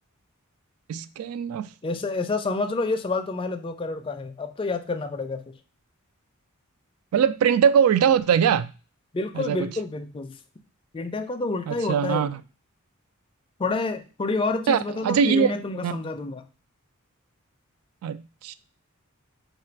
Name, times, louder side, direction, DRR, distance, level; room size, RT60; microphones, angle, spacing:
voice 1, 0.9-1.7 7.1-8.7 9.3-9.7 11.7-12.4 14.7-15.6 15.8-16.0 18.0-18.5, right 7 dB, 80° right, 0.3 m, -22 dB
voice 2, 1.8-5.4 9.1-10.3 10.9-12.3 13.6-16.4, left 3 dB, 25° left, 0.4 m, -28 dB
3.2 x 2.4 x 4.4 m
head